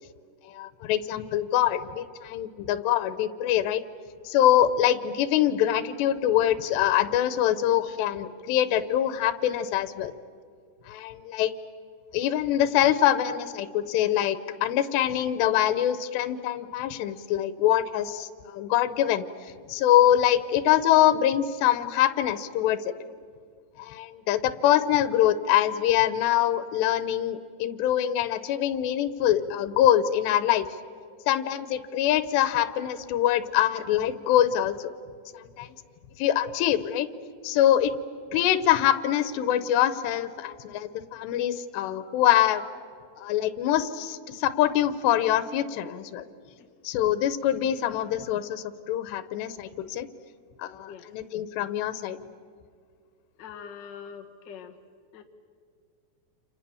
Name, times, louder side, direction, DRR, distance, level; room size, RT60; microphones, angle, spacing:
voice 1, 0.4-3.8 4.3-10.1 10.9-11.5 12.1-19.2 19.7-22.8 23.8-30.7 31.3-34.8 35.3-35.7 36.2-37.1 37.4-37.9 38.3-42.6 43.2-46.2 46.8-50.1 50.6-50.9 51.1-52.2, left 11 dB, 90° left, 13 dB, 3.1 m, -24 dB
voice 2, 53.4-54.8 55.1-55.2, left 7 dB, 55° left, 3 dB, 1.2 m, -43 dB
29.5 x 28.0 x 7.0 m, 2.1 s
omnidirectional pair, 4.8 m